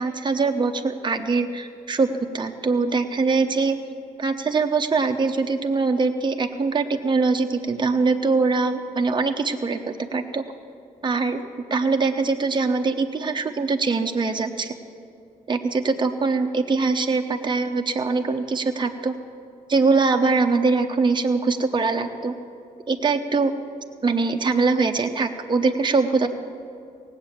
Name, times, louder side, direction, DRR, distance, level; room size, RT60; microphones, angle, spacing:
voice 1, 0.0-2.1 2.3-3.8 4.2-10.4 11.0-11.4 11.7-14.7 15.5-19.1 19.7-22.4 22.9-23.5 24.0-26.3, right 4 dB, 30° right, 4 dB, 0.9 m, -22 dB
17.5 x 8.1 x 7.3 m, 2.4 s
cardioid pair, 60°, 15 cm